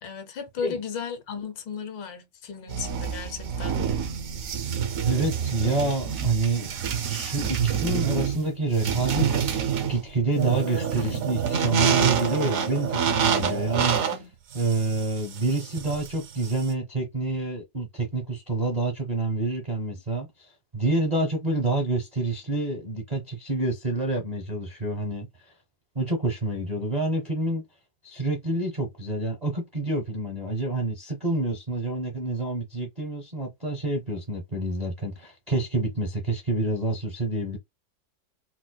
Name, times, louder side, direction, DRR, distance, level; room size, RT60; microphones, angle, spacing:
voice 1, 0.0-3.8, left 6 dB, 80° left, 1.4 m, -35 dB
sound 1, 2.7-16.7, right 7 dB, 65° right, 0.9 m, -27 dB
voice 2, 5.1-6.7 7.0-14.2 14.5-25.3 25.9-27.6 28.0-37.6, right 2 dB, 50° right, 0.4 m, -28 dB
4.2 x 2.1 x 2.2 m
omnidirectional pair, 2.0 m